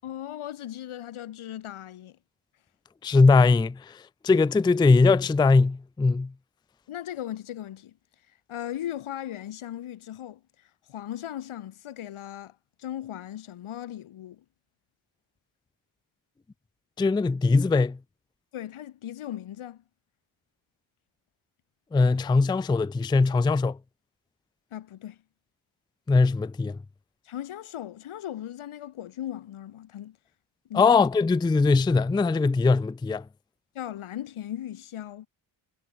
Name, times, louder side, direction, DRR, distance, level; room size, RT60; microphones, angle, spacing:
voice 1, 0.0-2.2 6.9-7.9 8.5-10.4 10.9-12.5 12.8-14.4 18.5-19.8 24.7-25.2 27.3-30.2 30.7-31.0 33.7-35.3, left 11 dB, 90° left, 6.1 m, -37 dB
voice 2, 3.0-6.3 17.0-18.0 21.9-23.8 26.1-26.8 30.7-33.2, left 4 dB, 10° left, 0.4 m, -21 dB
cardioid pair, 105°, 48 cm